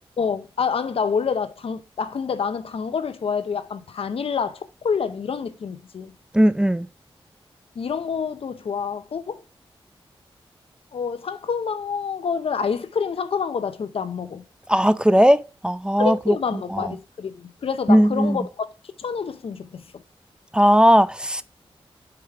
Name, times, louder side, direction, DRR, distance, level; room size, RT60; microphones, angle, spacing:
voice 1, 0.2-6.1 7.8-9.4 10.9-14.4 16.0-20.0, left 6 dB, 70° left, 0.6 m, -27 dB
voice 2, 6.3-6.9 14.7-16.3 16.7-16.9 17.9-18.4 20.5-21.4, equal, 10° right, 0.4 m, -17 dB
4.9 x 4.7 x 4.7 m
cardioid pair, 70°, 10 cm